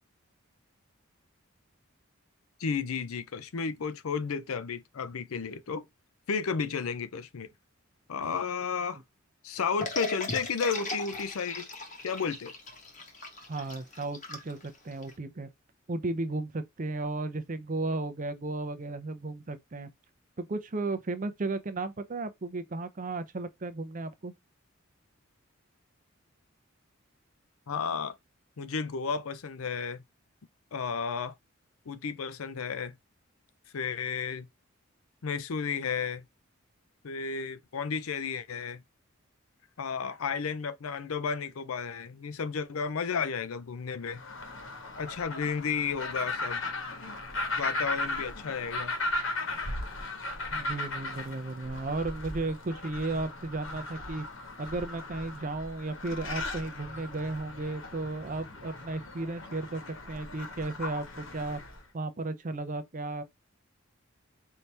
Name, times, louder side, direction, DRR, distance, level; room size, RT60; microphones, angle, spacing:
voice 1, 2.6-5.9 6.3-7.5 8.1-9.0 9.4-11.7 12.0-12.5 27.7-28.2 28.6-30.0 30.7-31.3 31.9-33.0 33.7-34.5 35.2-36.2 37.0-38.8 39.8-44.2 45.0-46.6 47.6-48.9, left 5 dB, 85° left, 0.5 m, -33 dB
sound 1, 9.8-15.1, left 3 dB, 35° left, 1.0 m, -38 dB
voice 2, 13.5-15.5 15.9-19.9 20.4-24.3 50.5-54.3 54.6-59.8 60.1-61.6 61.9-63.2, right 2 dB, 40° right, 0.5 m, -34 dB
sound 2, 44.1-61.8, left 2 dB, 65° left, 1.2 m, -37 dB
4.5 x 2.8 x 3.3 m
head